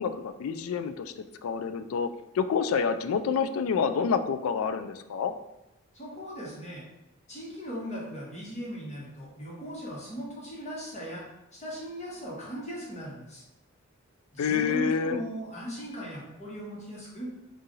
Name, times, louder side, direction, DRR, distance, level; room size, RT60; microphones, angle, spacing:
voice 1, 0.0-2.1 2.3-5.3 14.4-15.2, left 6 dB, 75° left, 11 dB, 0.3 m, -28 dB
voice 2, 5.9-6.9 7.3-11.2 11.5-13.4 14.3-17.3, equal, 35° left, -6 dB, 1.3 m, -38 dB
4.6 x 2.5 x 3.1 m, 0.92 s
head